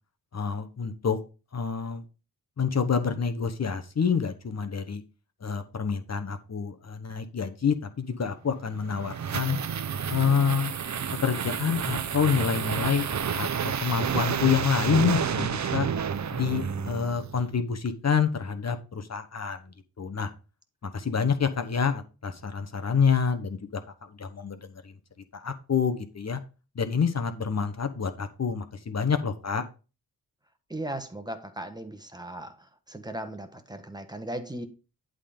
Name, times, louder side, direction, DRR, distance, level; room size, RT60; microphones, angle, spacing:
voice 1, 0.3-1.2 1.5-2.0 2.6-5.0 5.4-9.6 10.1-10.7 11.2-13.1 13.3-13.5 13.8-15.9 16.3-20.3 20.8-23.8 24.1-24.9 25.3-26.4 26.7-29.6, left 6 dB, 45° left, 1.0 m, -27 dB
sound 1, 8.6-17.5, right 7 dB, 50° right, 0.7 m, -30 dB
voice 2, 30.7-32.5 32.9-34.7, right 1 dB, 10° right, 1.3 m, -37 dB
11.0 x 3.8 x 5.2 m
cardioid pair, 80°, 37 cm